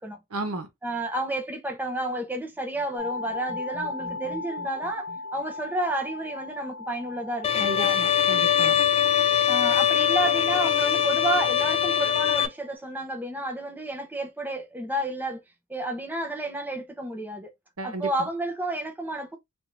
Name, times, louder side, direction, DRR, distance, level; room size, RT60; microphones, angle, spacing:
voice 1, 0.3-0.7 7.6-8.8 17.8-18.3, right 2 dB, 75° right, 1.0 m, -33 dB
voice 2, 0.8-8.0 9.5-15.4 15.7-17.5 17.8-19.4, right 1 dB, 10° right, 0.7 m, -31 dB
sound 1, 2.4-6.1, equal, 50° right, 2.2 m, -47 dB
sound 2, 3.0-12.7, left 3 dB, 80° left, 0.6 m, -39 dB
Bowed string instrument, 7.4-12.5, left 9 dB, 25° left, 0.3 m, -22 dB
3.5 x 2.5 x 3.1 m
head